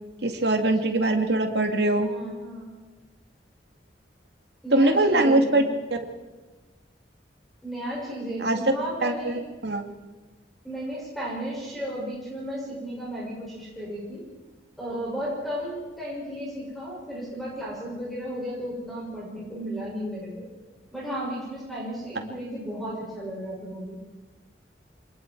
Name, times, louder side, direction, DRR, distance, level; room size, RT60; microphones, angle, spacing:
voice 1, 0.2-2.1 4.7-5.6 8.4-8.6 9.0-9.9, right 2 dB, 65° right, 4 dB, 2.5 m, -22 dB
voice 2, 2.0-2.7 4.6-5.7 7.6-9.4 10.6-14.2 14.8-20.4 20.9-24.0, equal, ahead, -6 dB, 7.0 m, -34 dB
26.5 x 21.0 x 4.8 m, 1.2 s
head